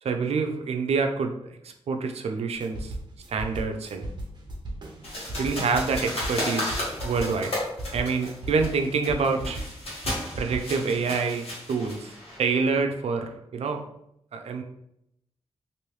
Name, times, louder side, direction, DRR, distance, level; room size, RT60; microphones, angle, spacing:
voice 1, 0.0-2.9 3.3-4.1 5.4-7.5 7.9-9.6 10.4-13.8 14.3-14.6, right 4 dB, 80° right, 5 dB, 0.4 m, -27 dB
sound 1, 2.5-10.6, right 1 dB, 45° right, 0.7 m, -36 dB
sound 2, 5.0-12.4, left 1 dB, 70° left, 1.2 m, -34 dB
3.1 x 2.6 x 3.1 m, 0.77 s
wide cardioid pair, 135°, 10 cm